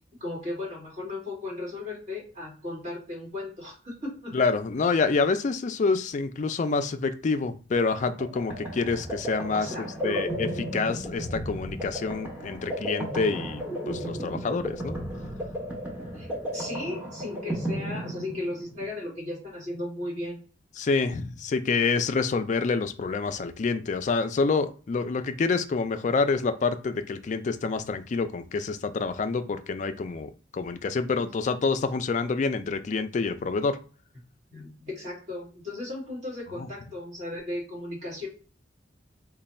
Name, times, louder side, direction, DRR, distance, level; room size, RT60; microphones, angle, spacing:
voice 1, 0.2-4.3 9.6-10.2 16.1-16.3 16.5-20.4 34.5-38.3, left 2 dB, 40° right, -5 dB, 1.9 m, -36 dB
voice 2, 4.3-9.7 10.0-15.0 20.8-33.8 36.6-36.7, left 4 dB, 40° left, 9 dB, 0.3 m, -27 dB
sound 1, 7.9-18.8, equal, 10° right, 0.7 m, -34 dB
3.2 x 2.2 x 4.1 m, 0.38 s
head